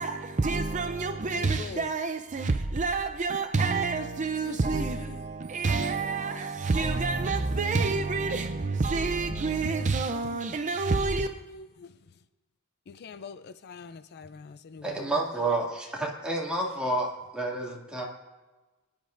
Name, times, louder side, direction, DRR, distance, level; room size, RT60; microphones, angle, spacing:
voice 1, 0.0-11.3, right 3 dB, 35° right, 0.5 m, -28 dB
voice 2, 1.3-1.9 4.4-4.6 4.9-5.3 9.3-9.4 9.6-9.7 10.1-11.9 12.9-15.1, left 5 dB, 50° left, 0.4 m, -44 dB
voice 3, 14.8-17.1 17.3-18.0, right 2 dB, 5° right, 2.3 m, -29 dB
23.0 x 10.5 x 2.6 m
head